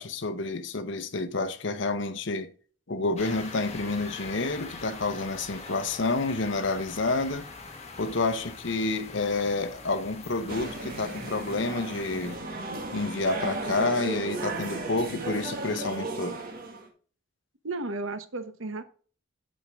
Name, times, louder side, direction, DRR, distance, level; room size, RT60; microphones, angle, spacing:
voice 1, 0.0-2.5 2.9-7.5 8.0-12.4 12.9-16.4, left 3 dB, 65° left, 0.8 m, -29 dB
sound 1, 3.2-12.4, left 3 dB, 35° left, 1.7 m, -43 dB
sound 2, 10.5-16.9, right 2 dB, 50° right, 1.9 m, -35 dB
voice 2, 17.6-18.8, right 2 dB, 85° right, 1.0 m, -33 dB
8.6 x 6.4 x 3.6 m
head